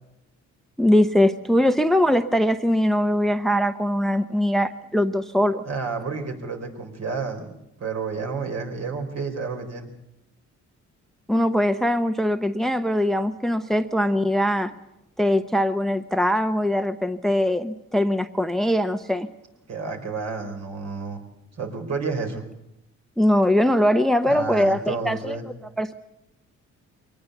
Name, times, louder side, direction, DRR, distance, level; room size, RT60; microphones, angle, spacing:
voice 1, 0.8-5.6 11.3-14.7 15.2-19.3 23.2-25.4 25.8-25.9, left 1 dB, ahead, 10 dB, 0.9 m, -21 dB
voice 2, 5.6-9.9 19.7-21.2 21.6-22.5 24.2-25.4, right 4 dB, 60° right, 4 dB, 4.6 m, -30 dB
23.0 x 19.0 x 8.1 m, 0.86 s
cardioid pair, 90°, 30 cm